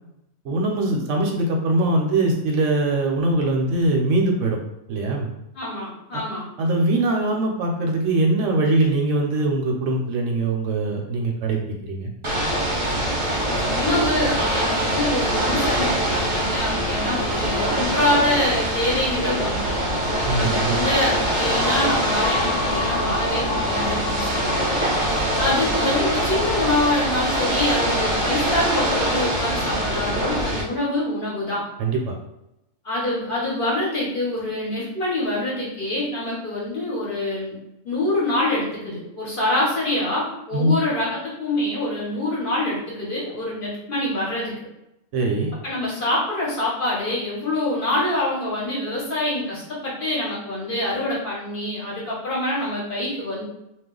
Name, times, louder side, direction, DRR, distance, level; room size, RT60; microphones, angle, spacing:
voice 1, 0.4-4.6 4.9-5.3 6.6-12.1 20.3-20.8 31.8-32.1 40.5-40.8 45.1-45.5, right 2 dB, 75° right, 1 dB, 0.9 m, -22 dB
voice 2, 5.5-6.5 13.5-20.0 20.4-24.6 24.9-25.0 25.4-31.6 32.8-37.6 37.8-44.5 45.6-53.4, left 1 dB, 45° left, -6 dB, 1.0 m, -25 dB
Ocean / Boat Water vehicle, 12.2-30.6, right 1 dB, 35° right, 0.5 m, -23 dB
sound 1, 21.5-28.6, left 3 dB, 85° left, 1.1 m, -30 dB
2.3 x 2.2 x 3.7 m, 0.89 s
omnidirectional pair, 1.4 m